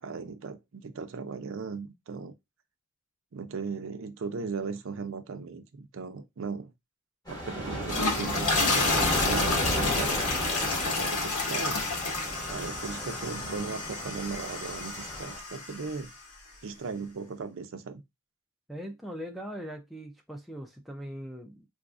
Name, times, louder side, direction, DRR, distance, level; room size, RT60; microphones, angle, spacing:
voice 1, 0.0-2.3 3.3-6.7 7.3-10.2 10.5-11.8 12.5-16.1 16.6-18.0, right 5 dB, 60° right, 0.5 m, -37 dB
sound 1, 7.3-15.4, equal, 15° left, 1.5 m, -34 dB
sound 2, 7.7-16.0, left 3 dB, 80° left, 1.1 m, -30 dB
voice 2, 18.7-21.7, equal, ahead, 0.3 m, -40 dB
4.0 x 2.4 x 2.4 m
head